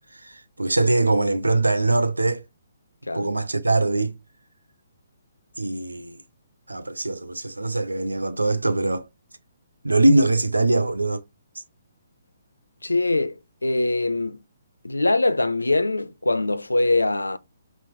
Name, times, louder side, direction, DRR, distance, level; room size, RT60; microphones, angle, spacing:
voice 1, 0.2-2.4 3.1-4.1 5.6-6.2 6.7-9.1 9.8-11.2, right 2 dB, 85° right, 0.5 m, -22 dB
voice 2, 12.8-13.3 13.6-14.4 14.8-17.4, left 2 dB, 80° left, 0.4 m, -22 dB
5.7 x 2.0 x 3.0 m
figure-of-eight pair, 130°, 0 cm